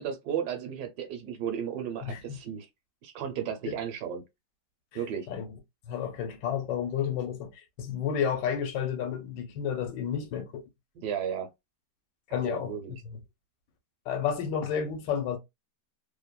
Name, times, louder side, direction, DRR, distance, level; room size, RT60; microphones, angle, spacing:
voice 1, 0.0-2.7 3.0-4.2 4.9-5.3 10.9-11.5 12.3-13.0, right 8 dB, 70° right, 1.1 m, -34 dB
voice 2, 2.0-2.4 3.7-3.8 5.3-5.5 5.9-10.6 12.3-12.7 13.0-13.2 14.1-15.4, left 8 dB, 80° left, 1.3 m, -31 dB
3.1 x 2.0 x 2.2 m
omnidirectional pair, 1.9 m